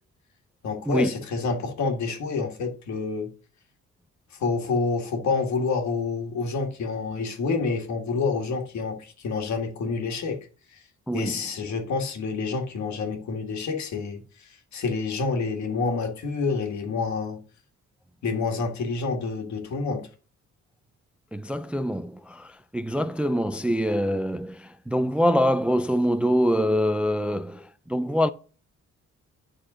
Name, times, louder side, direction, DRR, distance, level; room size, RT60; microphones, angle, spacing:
voice 1, 0.6-3.3 4.3-10.4 10.7-10.8 11.1-17.4 18.2-20.1, left 4 dB, 70° left, 2.0 m, -28 dB
voice 2, 11.1-11.4 21.3-28.3, equal, 5° right, 0.3 m, -25 dB
9.9 x 4.1 x 6.2 m
cardioid pair, 115°, 29 cm